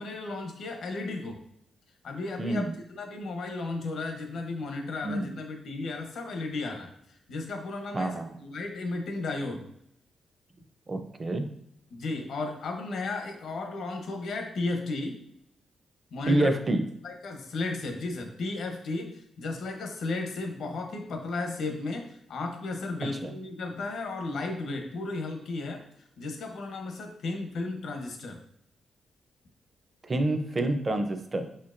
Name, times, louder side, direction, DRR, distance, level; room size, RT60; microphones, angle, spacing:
voice 1, 0.0-1.4 2.0-9.6 11.9-15.2 16.1-16.5 17.0-28.4, left 3 dB, 75° left, 4 dB, 0.8 m, -34 dB
voice 2, 2.4-2.7 5.0-5.3 7.9-8.4 10.9-11.5 16.3-16.8 23.2-23.3 30.0-31.4, right 1 dB, 30° right, 7 dB, 0.5 m, -27 dB
4.9 x 4.3 x 2.5 m, 0.74 s
cardioid pair, 125°, 0 cm